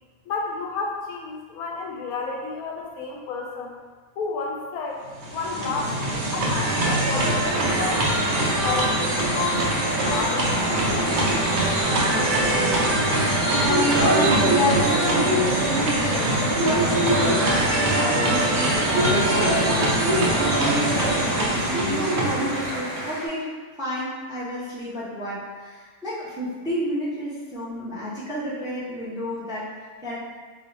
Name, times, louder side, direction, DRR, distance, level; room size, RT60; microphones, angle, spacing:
voice 1, 0.3-3.7 4.2-5.0 5.3-11.2, left 4 dB, 85° left, -1 dB, 1.1 m, -32 dB
sound 1, 5.1-23.1, right 1 dB, 60° right, 0.5 m, -22 dB
sound 2, 7.5-23.3, equal, 45° left, 0.6 m, -34 dB
voice 2, 13.6-23.5 23.8-30.1, equal, 5° right, -8 dB, 0.4 m, -30 dB
3.0 x 2.1 x 4.0 m, 1.4 s
omnidirectional pair, 1.5 m